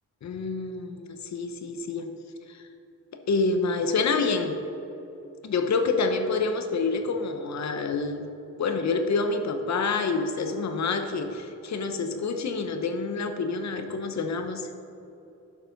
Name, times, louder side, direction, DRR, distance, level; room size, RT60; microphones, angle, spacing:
voice 1, 0.2-2.1 2.5-2.6 3.1-4.5 5.4-8.3 8.6-14.7, left 4 dB, 60° left, 7 dB, 0.8 m, -27 dB
10.5 x 7.1 x 3.9 m, 2.9 s
wide cardioid pair, 125°, 31 cm